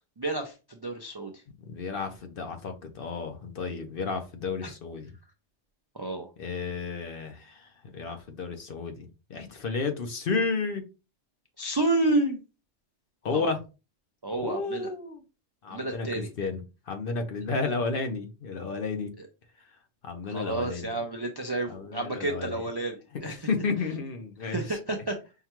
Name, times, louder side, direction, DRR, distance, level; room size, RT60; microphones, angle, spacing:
voice 1, 0.2-1.3 5.9-6.3 11.6-12.4 13.3-13.5 14.2-14.9 15.7-16.3 20.3-23.0 23.2-23.4 24.5-25.2, right 2 dB, 40° right, 0.3 m, -30 dB
voice 2, 1.6-5.2 6.4-10.8 13.2-13.6 14.3-15.2 15.6-19.1 19.6-19.8 20.0-21.1 21.7-22.7 23.1-24.8, left 4 dB, 55° left, 0.8 m, -32 dB
5.6 x 2.2 x 2.9 m
omnidirectional pair, 1.2 m